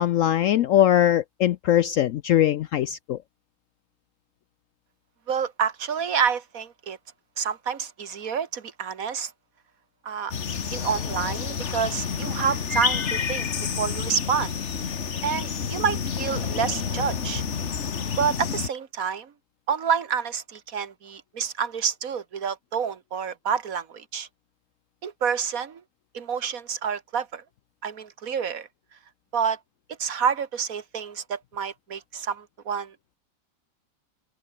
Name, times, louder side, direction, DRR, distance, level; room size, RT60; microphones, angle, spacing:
voice 1, 0.0-3.2, left 11 dB, 80° left, 0.7 m, -21 dB
voice 2, 5.3-7.0 7.4-9.3 10.0-10.3 10.7-14.5 15.2-17.4 18.2-19.3 19.7-24.3 25.0-25.8 26.1-27.4 27.8-28.7 29.3-29.6 30.0-33.0, right 7 dB, 50° right, 2.0 m, -28 dB
sound 1, 10.3-18.7, left 6 dB, 45° left, 1.5 m, -29 dB
omnidirectional pair, 1.9 m